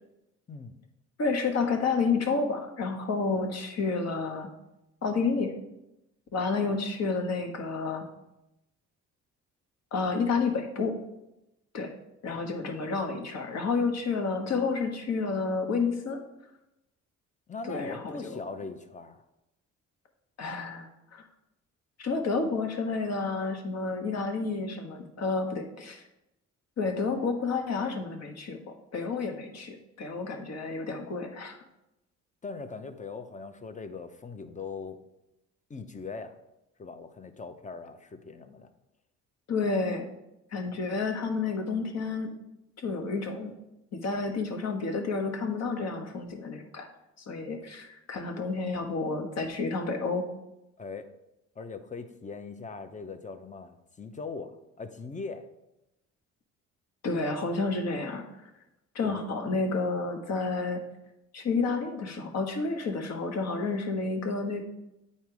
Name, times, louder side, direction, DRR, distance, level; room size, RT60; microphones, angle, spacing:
voice 1, 1.2-4.5 5.0-5.5 6.3-8.0 9.9-10.9 11.7-11.9 12.2-16.2 17.6-18.3 20.4-21.3 22.0-26.0 26.8-28.6 28.9-31.6 39.5-40.1 40.5-42.4 42.8-43.5 43.9-46.9 47.2-50.2 57.0-58.2 58.9-60.8 61.3-64.7, left 4 dB, 60° left, 4 dB, 1.4 m, -30 dB
voice 2, 17.5-19.2 32.4-35.0 35.7-36.4 36.8-38.7 50.8-51.1 51.6-55.5 59.0-59.3, left 4 dB, 25° left, 9 dB, 0.7 m, -40 dB
9.0 x 4.2 x 4.8 m, 0.89 s
cardioid pair, 90°, 30 cm